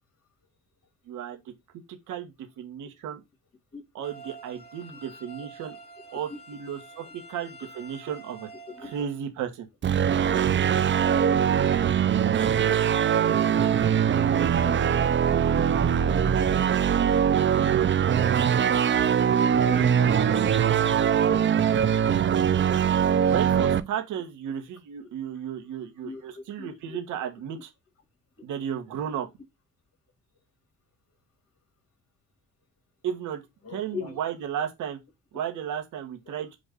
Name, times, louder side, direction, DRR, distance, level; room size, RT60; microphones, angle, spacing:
voice 1, 1.1-1.5 1.9-3.2 3.9-5.8 6.1-8.5 8.8-9.7 23.3-27.7 28.4-29.3 33.0-33.4 33.7-35.0 35.3-36.5, right 9 dB, 85° right, 1.4 m, -34 dB
sound 1, 4.0-9.0, right 2 dB, 30° left, 2.6 m, -47 dB
voice 2, 8.7-9.1 12.1-12.2 13.9-14.8 17.4-17.6 19.3-20.5 26.0-27.0 33.6-34.2 36.3-36.4, left 5 dB, 50° left, 2.7 m, -41 dB
sound 2, 9.8-23.8, right 8 dB, 40° right, 0.6 m, -22 dB
7.1 x 2.6 x 5.1 m
cardioid pair, 90°, 30 cm